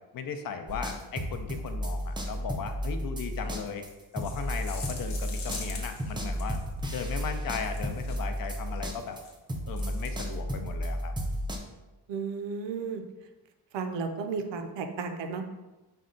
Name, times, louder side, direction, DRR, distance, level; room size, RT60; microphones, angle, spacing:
voice 1, 0.1-3.8 4.1-6.6 6.9-9.2 9.7-11.1, left 6 dB, 50° left, 7 dB, 0.5 m, -37 dB
sound 1, 0.7-9.2 9.5-11.6, equal, 10° right, 0.3 m, -33 dB
sound 2, 3.8-6.7 7.5-8.4 9.1-9.3 9.7-10.1, left 4 dB, 70° left, 0.9 m, -43 dB
voice 2, 12.1-13.0 13.7-15.4, right 5 dB, 80° right, 6 dB, 0.6 m, -33 dB
5.3 x 2.2 x 3.7 m, 1.1 s
cardioid pair, 135°, 43 cm